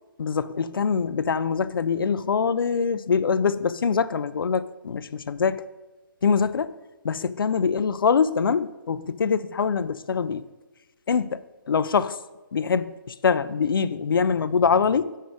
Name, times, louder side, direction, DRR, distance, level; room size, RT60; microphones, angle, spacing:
voice 1, 0.2-5.6 6.2-6.7 7.0-10.4 11.1-12.2 12.5-15.1, left 6 dB, 85° left, 15 dB, 0.4 m, -24 dB
7.9 x 5.5 x 4.8 m, 1.1 s
hypercardioid pair, 150°, 11 cm